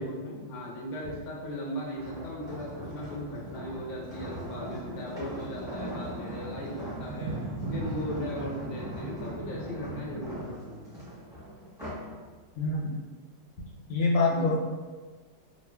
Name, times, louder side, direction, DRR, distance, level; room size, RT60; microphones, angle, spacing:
voice 1, 0.0-7.5 7.7-10.9 14.3-14.5, equal, 65° left, -4 dB, 0.8 m, -37 dB
sound 1, 2.0-12.1 12.6-12.9, equal, 5° right, 0.5 m, -41 dB
sound 2, 3.2-10.5, right 2 dB, 75° right, 1.2 m, -40 dB
voice 2, 12.6-12.9 13.9-14.6, left 3 dB, 85° left, -3 dB, 1.3 m, -25 dB
2.9 x 2.4 x 2.2 m, 1.4 s
omnidirectional pair, 2.0 m